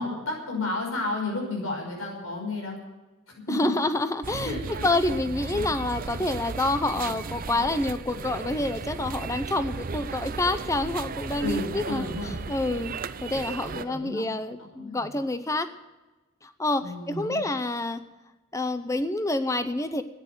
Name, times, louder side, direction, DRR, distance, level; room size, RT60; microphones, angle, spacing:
voice 1, 0.0-2.8 3.5-3.7 4.4-4.9 11.4-12.4 13.6-15.2 16.8-17.5, left 2 dB, 80° left, -1 dB, 5.6 m, -32 dB
voice 2, 3.5-4.5 4.8-15.7 16.4-18.0 18.5-20.0, left 2 dB, 15° left, 10 dB, 0.6 m, -28 dB
sound 1, 4.2-13.8, right 4 dB, 40° right, 0.5 m, -35 dB
14.0 x 9.9 x 7.9 m, 1.1 s
head